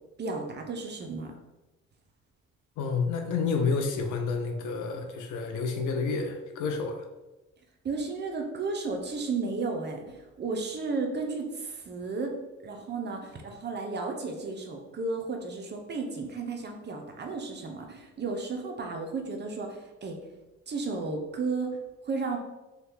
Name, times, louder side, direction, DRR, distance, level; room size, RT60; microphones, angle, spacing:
voice 1, 0.2-1.3 7.8-12.3 12.6-20.2 20.7-21.7 22.0-22.4, right 3 dB, 35° right, 3 dB, 0.5 m, -33 dB
voice 2, 2.8-7.0, left 4 dB, 80° left, 4 dB, 0.6 m, -29 dB
2.8 x 2.2 x 3.4 m, 1.1 s
cardioid pair, 90°, 30 cm